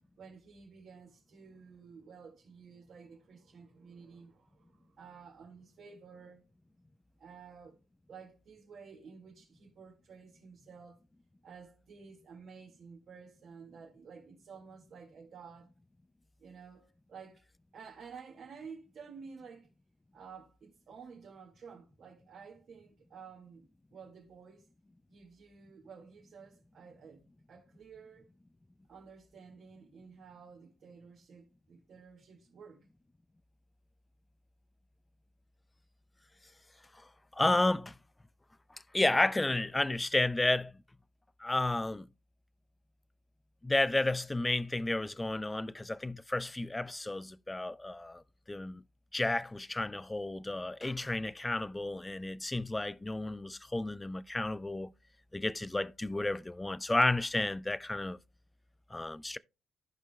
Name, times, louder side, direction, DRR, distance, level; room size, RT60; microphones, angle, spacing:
voice 1, 0.2-6.4 7.2-7.8 8.1-11.0 11.4-15.7 16.4-17.4 17.7-19.7 20.1-24.7 25.1-27.2 27.5-28.3 28.9-32.8, right 5 dB, 60° right, 2.1 m, -52 dB
voice 2, 37.3-38.0 38.9-40.7 41.4-42.1 43.6-48.2 48.5-48.8 49.1-54.9 55.3-58.2 58.9-59.4, left 2 dB, 15° left, 0.4 m, -32 dB
15.5 x 5.3 x 2.3 m
cardioid pair, 90°, 0 cm